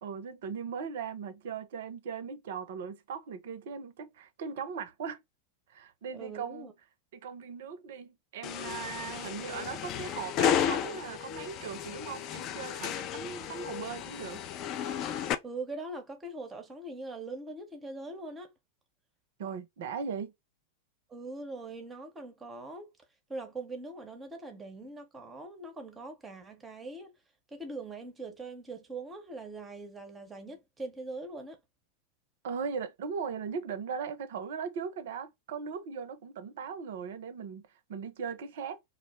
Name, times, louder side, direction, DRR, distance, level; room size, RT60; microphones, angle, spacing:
voice 1, 0.0-5.2 5.7-6.7 7.1-14.4 19.4-20.3 32.4-37.6 37.9-38.8, right 6 dB, 55° right, 0.5 m, -38 dB
voice 2, 6.1-6.7 15.4-18.5 21.1-22.9 23.3-27.2 27.5-31.6, right 2 dB, 15° right, 0.7 m, -42 dB
sound 1, 8.4-15.3, left 9 dB, 35° left, 0.3 m, -33 dB
2.4 x 2.0 x 3.2 m
figure-of-eight pair, 90°, 0 cm